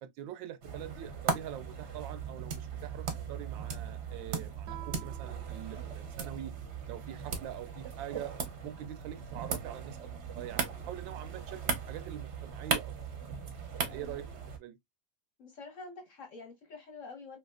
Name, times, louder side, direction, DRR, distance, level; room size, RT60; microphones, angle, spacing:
voice 1, 0.0-6.5 6.9-8.3 8.6-10.1 10.3-11.6 11.9-12.9 13.8-14.3 14.6-14.8, right 11 dB, 90° right, 1.4 m, -44 dB
sound 1, 0.6-14.6, right 6 dB, 55° right, 0.8 m, -38 dB
Guitar, 4.6-7.1, right 13 dB, 75° right, 1.1 m, -52 dB
voice 2, 13.8-14.2 15.4-17.4, left 3 dB, 50° left, 1.1 m, -47 dB
3.3 x 2.8 x 2.3 m
omnidirectional pair, 2.0 m